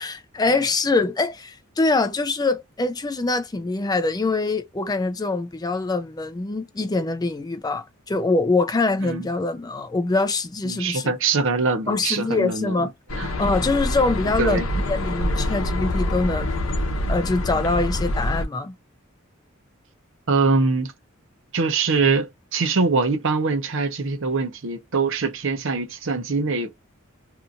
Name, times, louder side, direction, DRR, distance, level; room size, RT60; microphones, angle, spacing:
voice 1, 0.0-11.1 11.9-12.9 13.4-16.7 17.1-18.7, left 3 dB, 20° left, 0.4 m, -24 dB
voice 2, 10.6-13.3 14.4-14.7 20.3-20.9 21.5-26.7, right 4 dB, 65° right, 0.7 m, -23 dB
sound 1, 13.1-18.5, left 1 dB, 70° left, 0.7 m, -25 dB
2.8 x 2.4 x 2.6 m
head